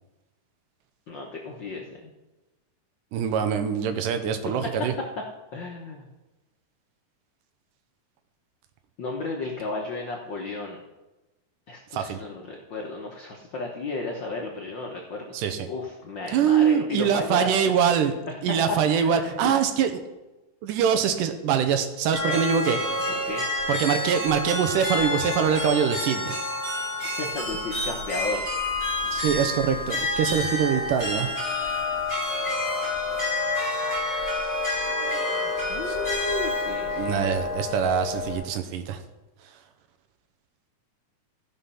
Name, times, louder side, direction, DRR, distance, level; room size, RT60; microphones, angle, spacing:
voice 1, 1.1-2.1 4.4-4.5 5.5-6.1 9.0-10.8 11.7-15.3 15.7-18.1 18.7-19.5 22.2-22.4 23.1-23.5 27.0-28.4 35.7-37.2, left 3 dB, 85° left, 0 dB, 1.0 m, -33 dB
voice 2, 3.1-4.9 11.9-12.2 15.3-15.7 16.3-18.1 18.4-19.9 20.6-22.8 23.7-26.4 29.1-31.3 35.9-36.0 37.0-39.0, right 8 dB, 85° right, 8 dB, 2.4 m, -24 dB
sound 1, 22.1-38.4, left 2 dB, 10° right, 4.7 m, -28 dB
15.0 x 5.8 x 5.6 m, 1.1 s
omnidirectional pair, 3.7 m